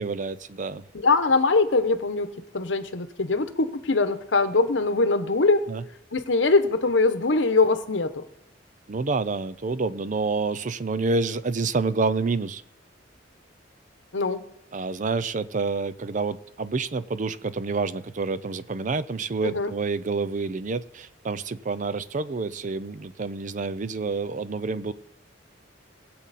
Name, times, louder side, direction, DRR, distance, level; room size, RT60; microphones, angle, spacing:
voice 1, 0.0-0.8 5.7-5.8 8.9-12.6 14.7-24.9, right 4 dB, 45° right, 15 dB, 0.5 m, -28 dB
voice 2, 0.9-2.3 2.5-5.7 6.1-8.2 14.1-14.4 19.4-19.7, left 3 dB, 85° left, 10 dB, 1.0 m, -22 dB
21.0 x 7.7 x 4.2 m, 0.81 s
head